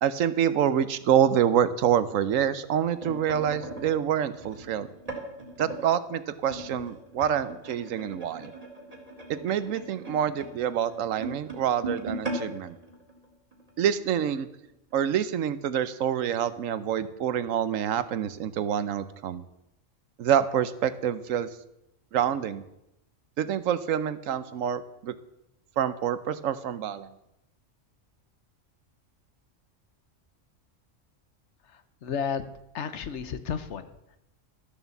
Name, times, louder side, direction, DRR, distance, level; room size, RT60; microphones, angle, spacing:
voice 1, 0.0-4.9 5.6-8.5 9.3-12.8 13.8-14.5 14.9-19.4 20.2-21.5 22.1-22.6 23.4-25.2 25.8-27.1, right 9 dB, 80° right, 14 dB, 1.1 m, -26 dB
sound 1, 2.5-5.8 6.5-13.8 14.2-14.4 14.6-14.9 15.7-15.8, right 2 dB, 30° right, 2.1 m, -39 dB
voice 2, 31.6-32.4 32.7-34.2, left 7 dB, 65° left, 12 dB, 1.1 m, -33 dB
13.0 x 7.3 x 7.1 m, 0.86 s
omnidirectional pair, 1.4 m